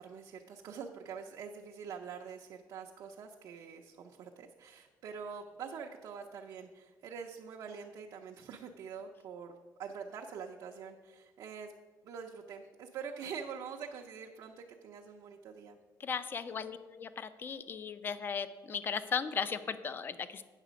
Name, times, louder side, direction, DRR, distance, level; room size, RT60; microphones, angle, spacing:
voice 1, 0.0-11.7 12.0-15.8 16.5-16.7, right 6 dB, 60° right, 1 dB, 0.6 m, -45 dB
voice 2, 16.0-20.4, left 6 dB, 30° left, 13 dB, 0.4 m, -37 dB
9.0 x 6.5 x 5.1 m, 1.3 s
cardioid pair, 155°, 7 cm